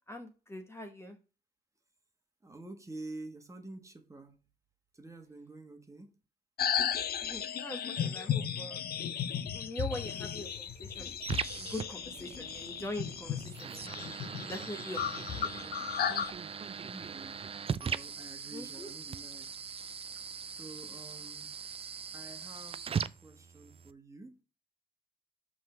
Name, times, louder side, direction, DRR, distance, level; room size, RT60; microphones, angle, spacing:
voice 1, 0.1-1.2 7.2-8.8 9.5-11.1 11.6-14.2 14.5-15.7 18.5-18.9, equal, 15° left, 1.0 m, -43 dB
voice 2, 2.4-4.3 4.9-6.1 12.1-12.4 16.8-17.4 17.8-19.9 20.5-21.5 22.1-24.4, right 2 dB, 15° right, 1.4 m, -48 dB
sound 1, 6.6-16.3, left 9 dB, 60° left, 0.7 m, -35 dB
sound 2, 9.9-23.9, right 6 dB, 35° right, 0.4 m, -40 dB
6.1 x 3.8 x 5.6 m
cardioid pair, 90°, 18 cm